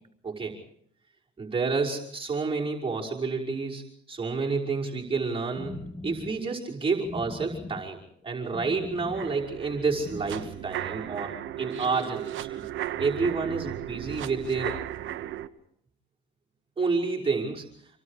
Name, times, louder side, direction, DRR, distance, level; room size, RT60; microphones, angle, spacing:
voice 1, 0.2-0.6 1.4-3.8 4.1-8.0 8.2-12.6 13.0-14.7 16.8-17.6, right 4 dB, 30° right, -3 dB, 5.7 m, -29 dB
sound 1, 5.5-10.5, left 2 dB, 15° left, 2.7 m, -41 dB
sound 2, 9.1-15.5, right 12 dB, 80° right, 1.2 m, -36 dB
27.5 x 25.0 x 5.0 m, 0.70 s
cardioid pair, 90°, 20 cm